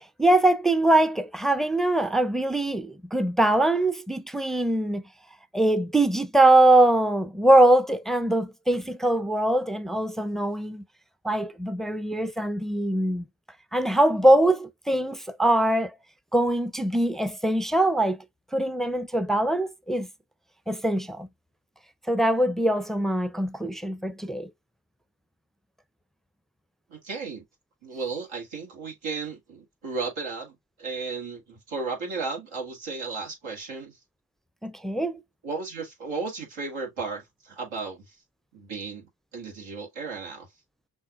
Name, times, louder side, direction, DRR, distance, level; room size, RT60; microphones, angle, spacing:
voice 1, 0.0-5.0 5.5-10.8 11.2-13.3 13.7-15.9 16.3-18.2 18.5-20.1 20.7-21.3 22.1-24.5 34.6-35.2, right 1 dB, ahead, 0.4 m, -22 dB
voice 2, 26.9-27.4 27.8-33.9 35.4-38.1 38.5-39.1 39.3-40.5, right 4 dB, 85° right, 1.9 m, -34 dB
6.2 x 2.5 x 2.4 m
supercardioid pair, 45°, 47 cm